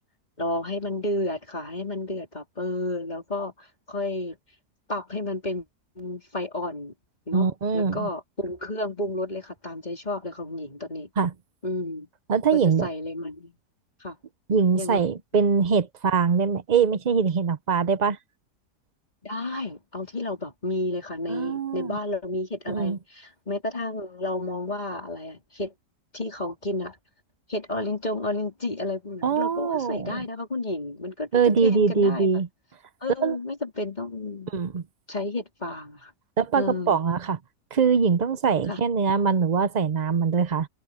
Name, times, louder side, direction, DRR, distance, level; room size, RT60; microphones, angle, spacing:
voice 1, 0.4-4.4 4.9-5.7 6.0-6.9 7.3-11.1 11.6-12.1 12.5-13.6 14.0-14.2 14.7-15.1 19.2-25.7 26.1-27.0 27.5-31.3 31.6-32.4 33.0-34.5 35.1-36.1 36.5-37.0 38.7-38.8, left 2 dB, 25° left, 4.0 m, -31 dB
voice 2, 7.3-8.1 11.2-11.3 12.3-12.9 14.5-18.2 21.3-22.0 22.7-23.0 29.2-30.2 31.3-32.5 33.2-33.4 34.5-34.8 36.4-37.4 37.7-40.7, right 5 dB, 50° right, 0.5 m, -23 dB
omnidirectional pair, 1.7 m